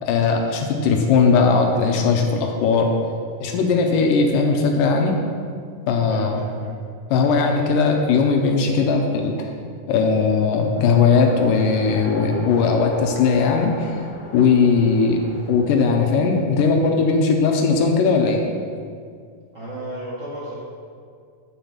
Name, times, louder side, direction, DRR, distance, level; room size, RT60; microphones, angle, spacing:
voice 1, 0.0-2.9 3.4-5.2 5.9-6.4 7.1-9.5 9.9-14.1 14.3-18.4, left 4 dB, 80° left, 2 dB, 2.3 m, -18 dB
Race car auto racing, 10.7-16.0, left 1 dB, 30° left, 2.9 m, -38 dB
voice 2, 19.5-20.5, right 1 dB, 40° right, -8 dB, 1.7 m, -33 dB
8.1 x 5.5 x 7.3 m, 2.2 s
omnidirectional pair, 4.0 m